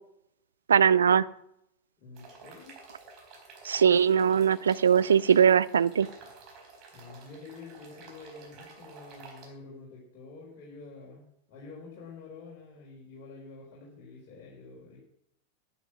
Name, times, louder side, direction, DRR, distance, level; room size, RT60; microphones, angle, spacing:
voice 1, 0.7-1.3 3.6-6.1, right 7 dB, 70° right, 17 dB, 0.5 m, -21 dB
voice 2, 2.0-2.8 6.9-15.0, left 3 dB, 40° left, -5 dB, 4.7 m, -48 dB
sound 1, 2.2-9.5, right 4 dB, 40° right, 4.3 m, -51 dB
11.5 x 10.5 x 6.3 m, 0.77 s
figure-of-eight pair, 90°, 0 cm